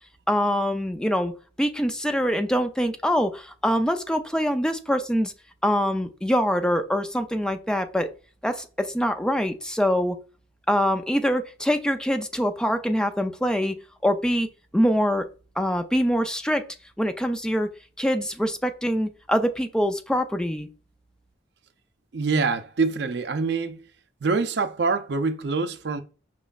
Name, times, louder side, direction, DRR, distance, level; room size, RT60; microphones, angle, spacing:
voice 1, 0.3-1.3 1.6-5.3 5.6-8.1 8.4-10.2 10.7-13.8 14.0-14.5 14.7-15.3 15.6-16.6 17.0-17.7 18.0-20.7, equal, 5° left, 0.3 m, -24 dB
voice 2, 22.1-23.9 24.2-26.0, right 4 dB, 65° right, 0.5 m, -25 dB
5.3 x 3.0 x 2.3 m
head